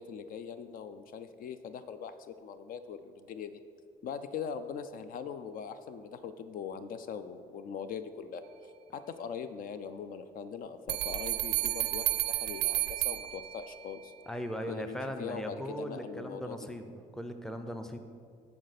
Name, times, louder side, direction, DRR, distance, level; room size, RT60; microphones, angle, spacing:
voice 1, 0.0-3.6 4.0-14.1 14.7-16.6, left 6 dB, 55° left, 11 dB, 0.4 m, -41 dB
sound 1, 10.9-14.0, right 17 dB, 80° right, 0.4 m, -32 dB
voice 2, 14.3-18.0, equal, 5° left, 7 dB, 0.5 m, -39 dB
12.5 x 4.3 x 4.1 m, 2.3 s
cardioid pair, 110°, 17 cm